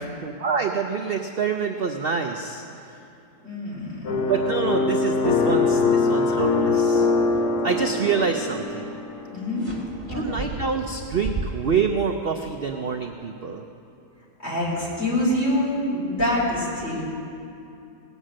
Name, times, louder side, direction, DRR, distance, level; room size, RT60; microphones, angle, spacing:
voice 1, 0.0-3.0 4.3-7.1 7.6-8.9 10.1-13.6, right 5 dB, 80° right, 4 dB, 0.5 m, -27 dB
voice 2, 3.4-4.2 9.3-9.7 10.1-10.4 14.4-17.0, left 1 dB, 35° left, -6 dB, 4.2 m, -25 dB
sound 1, 4.0-9.2, left 3 dB, 65° left, 1.6 m, -22 dB
sound 2, 9.6-11.9, right 3 dB, 5° right, 2.2 m, -33 dB
17.5 x 8.2 x 6.3 m, 2.7 s
omnidirectional pair, 1.8 m